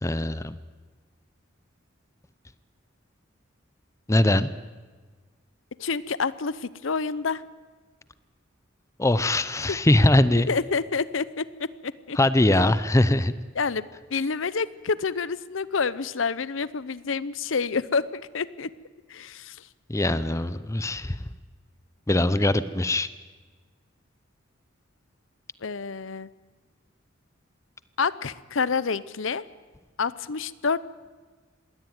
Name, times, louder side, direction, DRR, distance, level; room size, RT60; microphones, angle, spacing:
voice 1, 0.0-0.6 4.1-4.5 9.0-10.5 12.2-13.3 19.9-21.2 22.1-23.1, left 1 dB, 15° left, 15 dB, 0.6 m, -21 dB
voice 2, 5.8-7.4 9.7-9.8 10.3-12.2 12.5-12.7 13.5-18.7 19.1-19.7 25.6-26.3 28.0-29.4 30.0-30.8, left 5 dB, 70° left, 17 dB, 0.7 m, -28 dB
21.0 x 17.0 x 9.4 m, 1.4 s
head